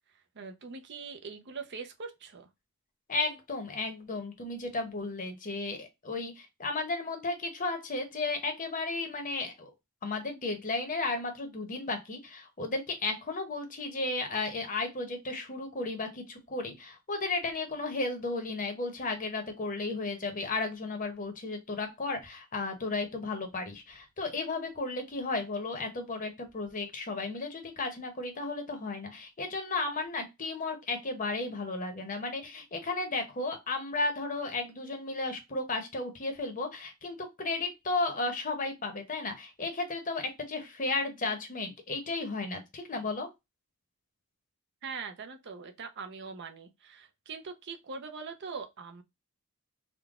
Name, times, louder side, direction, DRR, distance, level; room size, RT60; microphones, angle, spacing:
voice 1, 0.4-2.5 44.8-49.0, right 5 dB, 50° right, 0.6 m, -42 dB
voice 2, 3.1-9.7 10.0-43.3, left 3 dB, 40° left, 0.9 m, -34 dB
3.7 x 2.2 x 3.5 m
head